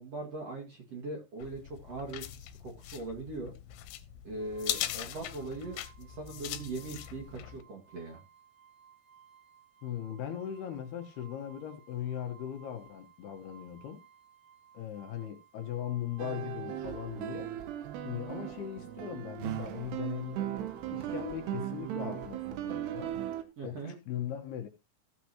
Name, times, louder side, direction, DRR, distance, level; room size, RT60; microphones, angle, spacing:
voice 1, 0.0-3.5 4.2-8.2 23.6-23.9, right 2 dB, 45° right, 2.4 m, -40 dB
sound 1, 1.4-7.6, left 13 dB, 90° left, 3.3 m, -40 dB
sound 2, 4.4-22.4, right 8 dB, 30° right, 2.8 m, -60 dB
voice 2, 9.8-14.0 14.7-17.5 18.0-20.4 20.9-23.2 23.6-24.7, left 10 dB, 70° left, 2.9 m, -39 dB
sound 3, 16.2-23.4, right 11 dB, 75° right, 3.0 m, -37 dB
15.5 x 7.9 x 2.9 m
omnidirectional pair, 5.2 m